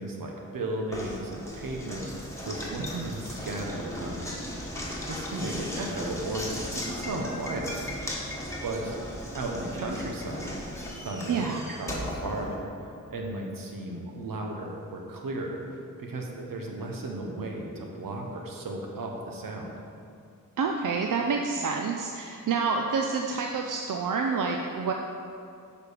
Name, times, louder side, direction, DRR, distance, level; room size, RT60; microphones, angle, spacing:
voice 1, 0.0-4.4 5.1-6.5 6.7-7.8 8.6-10.6 11.0-12.7 13.1-15.6 16.0-19.7, right 2 dB, 85° right, 1 dB, 1.0 m, -35 dB
Knock, 0.9-13.1, equal, 10° left, 1.4 m, -37 dB
voice 2, 11.3-11.6 20.6-24.9, right 5 dB, 70° right, 2 dB, 0.5 m, -28 dB
6.7 x 4.9 x 5.0 m, 2.4 s
cardioid pair, 70°, 33 cm